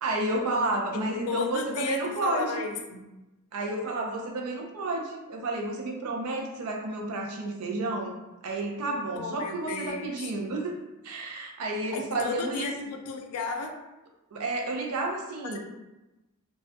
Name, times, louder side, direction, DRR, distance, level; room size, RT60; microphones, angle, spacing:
voice 1, 0.0-2.6 3.5-8.1 8.4-10.8 11.0-12.7 14.3-15.6, right 2 dB, 85° right, 1 dB, 0.5 m, -31 dB
voice 2, 0.9-3.0 9.1-10.3 11.9-13.8 15.5-15.6, left 4 dB, 80° left, 4 dB, 0.4 m, -34 dB
2.3 x 2.1 x 2.6 m, 1.0 s
head